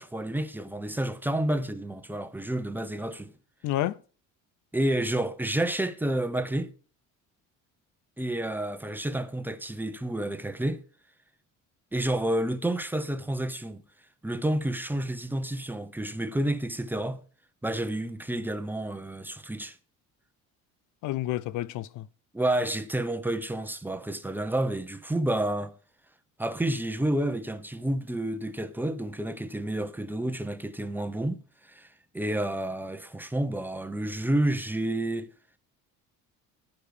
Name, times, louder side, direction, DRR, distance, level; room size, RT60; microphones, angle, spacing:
voice 1, 0.0-3.3 4.7-6.7 8.2-10.8 11.9-13.8 14.2-17.2 17.6-19.8 22.3-25.7 26.4-31.9 32.1-35.3, right 1 dB, 5° right, 0.9 m, -30 dB
voice 2, 3.6-4.0 21.0-22.1, left 14 dB, 65° left, 0.6 m, -29 dB
14.5 x 5.4 x 6.7 m
cardioid pair, 135°, 32 cm